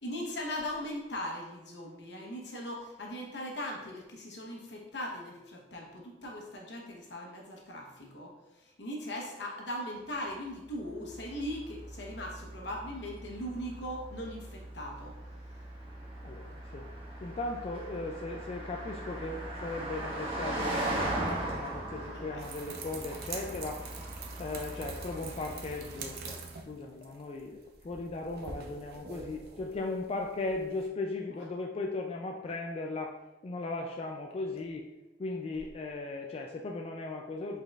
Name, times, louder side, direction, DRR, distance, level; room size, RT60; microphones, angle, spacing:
voice 1, 0.0-15.2 22.3-22.4, left 1 dB, 70° left, -1 dB, 1.0 m, -39 dB
Car passing by, 10.6-26.3, right 1 dB, 30° right, 1.0 m, -39 dB
voice 2, 16.2-16.9 17.2-23.8 24.4-33.2 33.4-34.9 35.2-37.6, left 3 dB, 35° left, 1 dB, 0.3 m, -37 dB
sound 1, 22.4-30.9, right 4 dB, 60° right, 0.5 m, -45 dB
5.1 x 3.9 x 2.4 m, 1.0 s
head